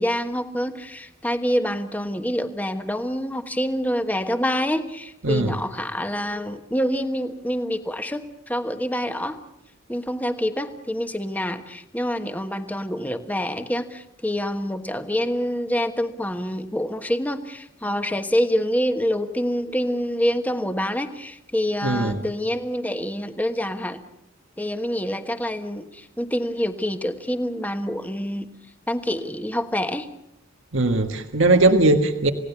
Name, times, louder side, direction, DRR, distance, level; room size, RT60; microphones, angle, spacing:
voice 1, 0.0-9.4 9.9-24.0 24.6-28.5 28.9-30.1, equal, 10° left, 8 dB, 1.3 m, -26 dB
voice 2, 5.2-5.6 21.8-22.2 30.7-32.3, right 2 dB, 80° right, 6 dB, 1.6 m, -19 dB
28.5 x 17.5 x 7.1 m, 0.80 s
head